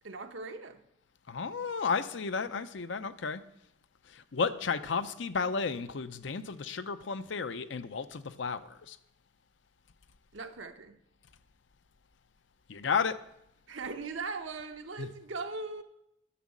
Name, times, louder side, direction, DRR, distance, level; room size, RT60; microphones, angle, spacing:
voice 1, 0.0-0.8 10.3-11.0 13.7-15.8, right 3 dB, 80° right, 1.0 m, -39 dB
voice 2, 1.3-3.4 4.1-9.0 12.7-13.2 15.0-15.1, left 5 dB, 65° left, 0.6 m, -33 dB
10.0 x 6.4 x 7.2 m
head